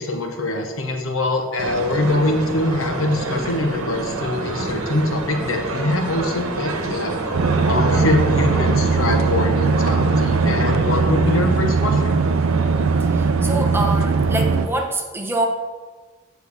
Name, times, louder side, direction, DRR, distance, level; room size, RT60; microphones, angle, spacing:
voice 1, 0.0-7.2 7.7-12.1, left 1 dB, 70° left, 4 dB, 1.0 m, -23 dB
sound 1, 1.6-14.8, right 2 dB, 90° right, 1.0 m, -28 dB
sound 2, 7.3-14.7, right 4 dB, 70° right, 0.4 m, -19 dB
voice 2, 7.4-7.8 10.3-10.6 13.0-15.5, right 1 dB, 10° right, 2 dB, 0.8 m, -27 dB
6.9 x 4.5 x 6.8 m, 1.4 s
head